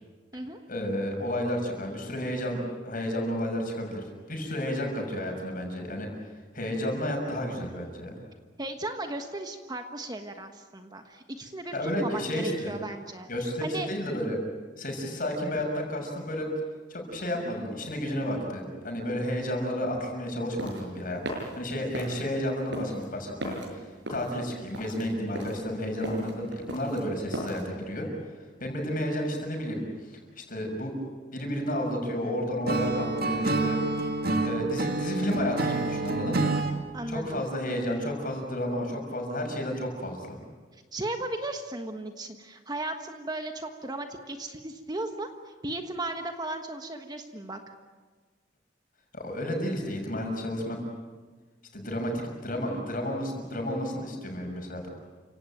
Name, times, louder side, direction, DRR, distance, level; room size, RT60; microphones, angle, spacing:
voice 1, 0.7-6.1 6.5-8.2 11.7-12.7 13.3-14.4 14.8-16.5 16.9-28.1 28.6-30.9 31.3-33.8 34.4-36.5 37.1-40.4 49.1-50.8 51.7-54.9, equal, 50° left, 2 dB, 6.8 m, -31 dB
voice 2, 8.6-13.3 13.6-13.9 36.9-37.4 40.9-45.3 45.6-47.6, right 2 dB, 20° right, 5 dB, 1.4 m, -36 dB
sound 1, 20.3-27.7, equal, 70° right, 6.9 m, -37 dB
Acoustic guitar / Strum, 32.7-36.8, right 2 dB, 55° right, 2.0 m, -28 dB
29.5 x 17.0 x 9.1 m, 1.4 s
head